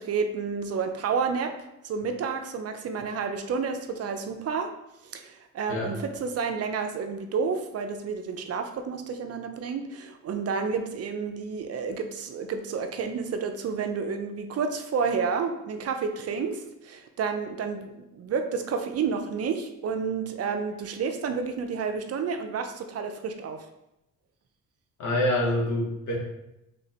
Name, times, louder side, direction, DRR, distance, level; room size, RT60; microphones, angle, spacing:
voice 1, 0.0-1.5 1.8-4.7 5.0-23.7, right 5 dB, 45° right, 7 dB, 0.5 m, -30 dB
voice 2, 25.0-26.2, left 1 dB, 60° left, -1 dB, 1.3 m, -26 dB
3.4 x 2.7 x 4.1 m, 0.87 s
supercardioid pair, 80°, 33 cm